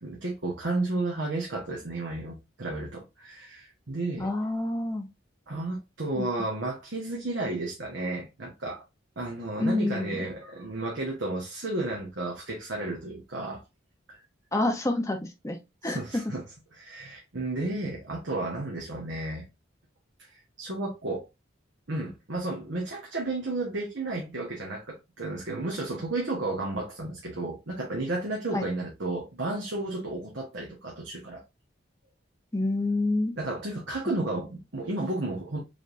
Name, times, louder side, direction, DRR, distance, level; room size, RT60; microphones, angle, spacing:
voice 1, 0.0-4.3 5.5-8.8 9.2-13.6 14.1-14.2 15.8-16.4 16.7-19.4 20.2-21.3 21.9-31.4 33.4-35.6, right 2 dB, 65° right, 1.1 m, -32 dB
voice 2, 4.2-5.1 6.1-6.3 9.6-10.2 14.5-15.2 15.4-15.6 15.8-16.0 16.2-16.3 28.5-28.7 32.5-33.3, left 2 dB, 15° left, 0.7 m, -27 dB
5.0 x 3.4 x 2.6 m
head